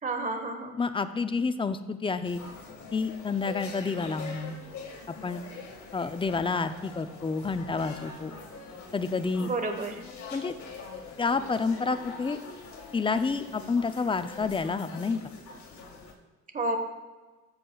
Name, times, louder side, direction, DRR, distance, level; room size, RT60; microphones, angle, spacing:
voice 1, 0.0-0.8 9.4-10.0 16.5-16.8, right 2 dB, 25° right, 6 dB, 1.3 m, -30 dB
voice 2, 0.8-2.4 2.9-4.6 5.1-5.4 5.9-8.3 8.9-9.5 10.3-10.6 11.2-12.4 12.9-15.3, left 4 dB, 15° left, 10 dB, 0.5 m, -29 dB
sound 1, 2.2-16.1, left 4 dB, 70° left, 2.0 m, -44 dB
13.5 x 7.4 x 2.4 m, 1.3 s
cardioid pair, 90°, 30 cm